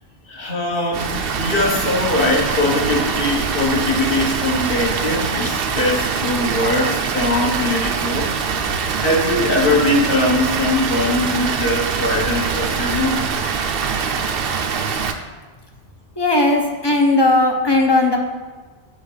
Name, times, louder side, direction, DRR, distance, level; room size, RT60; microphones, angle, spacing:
voice 1, 0.3-1.1 1.4-8.3 8.7-13.3, left 2 dB, 55° left, -1 dB, 1.4 m, -21 dB
Water, 0.9-15.1, right 6 dB, 65° right, 0.8 m, -23 dB
voice 2, 16.2-18.2, left 2 dB, 25° left, 1 dB, 0.7 m, -16 dB
7.1 x 4.1 x 5.5 m, 1.4 s
omnidirectional pair, 1.1 m